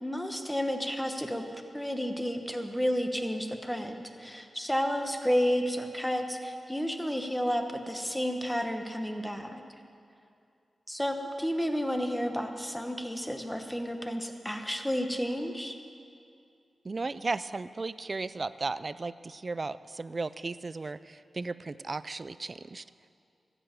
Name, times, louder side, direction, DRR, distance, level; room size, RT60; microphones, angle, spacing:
voice 1, 0.0-1.4 1.7-9.6 10.9-15.7, equal, 5° left, 5 dB, 1.1 m, -31 dB
voice 2, 16.8-22.8, right 3 dB, 35° right, 15 dB, 0.4 m, -35 dB
14.5 x 8.1 x 8.9 m, 2.5 s
wide cardioid pair, 105°, 0 cm